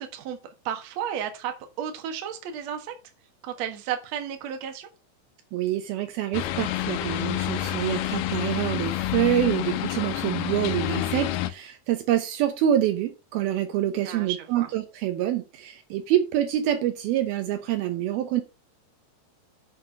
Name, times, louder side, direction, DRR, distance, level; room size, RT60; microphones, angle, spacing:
voice 1, 0.0-2.9 3.4-4.9 14.0-14.7, right 9 dB, 55° right, 2.2 m, -33 dB
voice 2, 5.5-18.4, right 12 dB, 75° right, 2.6 m, -26 dB
sound 1, 6.3-11.5, left 13 dB, 80° left, 2.6 m, -28 dB
8.6 x 6.3 x 5.3 m
omnidirectional pair, 4.7 m